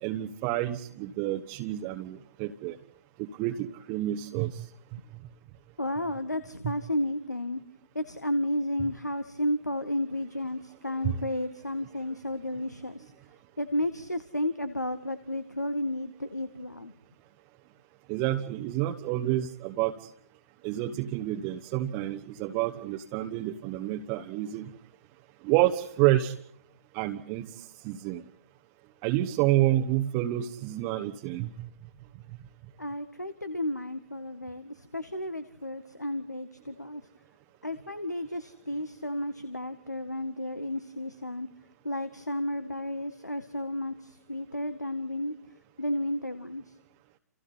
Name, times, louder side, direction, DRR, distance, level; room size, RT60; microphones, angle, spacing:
voice 1, 0.0-2.8 3.2-4.6 6.6-6.7 11.0-11.1 18.1-19.9 20.6-24.7 25.4-26.3 26.9-27.5 27.8-28.2 29.0-31.5, right 14 dB, 30° right, 3 dB, 1.3 m, -28 dB
voice 2, 5.8-7.6 7.9-13.1 13.6-16.9 32.8-37.0 37.6-41.5 41.8-45.3 45.8-46.7, left 1 dB, 90° left, 11 dB, 1.7 m, -32 dB
29.5 x 29.0 x 4.2 m, 0.65 s
figure-of-eight pair, 125°, 9 cm